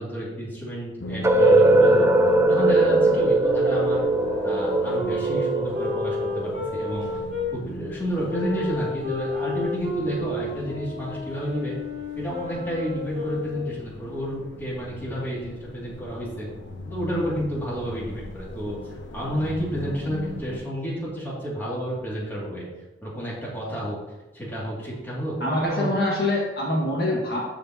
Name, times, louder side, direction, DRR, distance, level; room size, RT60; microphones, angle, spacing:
voice 1, 0.0-2.1 2.5-4.0 4.4-7.1 7.5-11.8 12.1-16.5 16.9-22.6 23.0-24.0 24.3-25.9, equal, 10° left, -8 dB, 2.5 m, -30 dB
sound 1, 1.0-20.6, left 1 dB, 80° left, 0.8 m, -40 dB
sound 2, 1.2-7.1, right 2 dB, 15° right, 0.4 m, -20 dB
sound 3, 1.7-7.5 8.2-13.9, left 3 dB, 45° right, 2.7 m, -32 dB
voice 2, 25.4-27.5, left 1 dB, 55° left, -4 dB, 2.0 m, -25 dB
14.0 x 5.0 x 3.0 m, 1.2 s
head